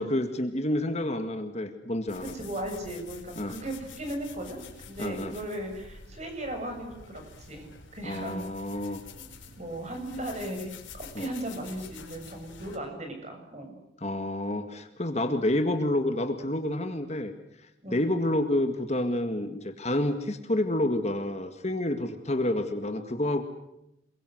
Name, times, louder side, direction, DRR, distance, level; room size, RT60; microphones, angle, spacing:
voice 1, 0.0-2.3 3.4-3.5 5.0-5.3 8.0-9.0 11.2-11.3 14.0-17.3 17.9-23.4, left 1 dB, 35° left, 7 dB, 2.0 m, -29 dB
sound 1, 2.1-12.8, left 4 dB, 90° left, 4.8 m, -48 dB
voice 2, 2.2-4.6 4.9-8.4 8.7-8.8 9.6-13.7 17.8-18.0, right 1 dB, 35° right, 5 dB, 7.4 m, -37 dB
28.5 x 22.5 x 7.9 m, 0.85 s
head